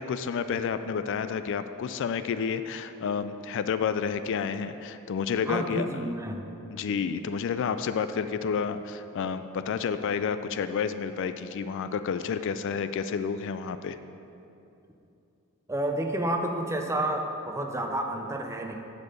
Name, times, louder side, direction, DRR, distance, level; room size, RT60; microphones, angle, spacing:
voice 1, 0.0-5.9 6.7-14.0, left 6 dB, 60° left, 11 dB, 0.3 m, -30 dB
voice 2, 5.5-6.5 15.7-18.7, right 1 dB, 15° right, 3 dB, 0.6 m, -30 dB
9.6 x 4.2 x 6.5 m, 2.8 s
head